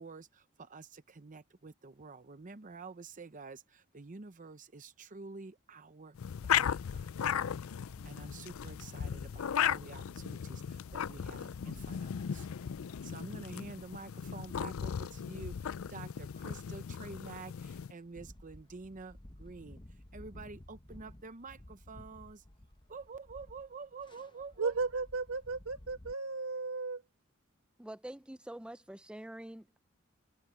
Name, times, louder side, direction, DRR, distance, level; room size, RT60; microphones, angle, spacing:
voice 1, 0.0-7.2 8.0-12.5 13.0-22.4 22.9-24.7, right 4 dB, 40° right, 0.8 m, -49 dB
sound 1, 6.1-17.9, left 8 dB, 75° left, 0.4 m, -36 dB
sound 2, 7.7-26.1, left 1 dB, 20° left, 1.0 m, -57 dB
voice 2, 24.6-27.0, right 4 dB, 85° right, 1.7 m, -35 dB
voice 3, 27.8-29.8, right 1 dB, 5° right, 0.4 m, -46 dB
head